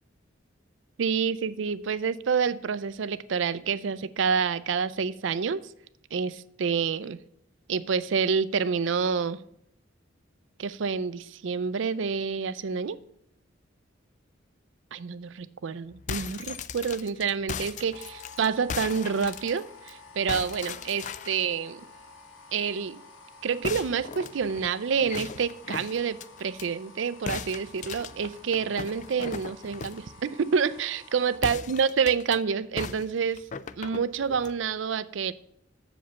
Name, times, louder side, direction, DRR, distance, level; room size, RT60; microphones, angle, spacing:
voice 1, 1.0-5.6 6.1-7.2 7.7-9.4 10.6-13.0 14.9-21.8 22.5-23.0 23.4-33.4 33.8-35.3, right 6 dB, 70° right, 16 dB, 0.5 m, -28 dB
sound 1, 15.9-19.9 20.3-21.4 23.6-26.7 27.3-30.1 31.3-32.4 32.8-34.6, left 6 dB, 40° left, 0.4 m, -38 dB
sound 2, 17.9-31.4, left 3 dB, 80° left, 1.3 m, -51 dB
7.1 x 5.1 x 6.9 m, 0.73 s
head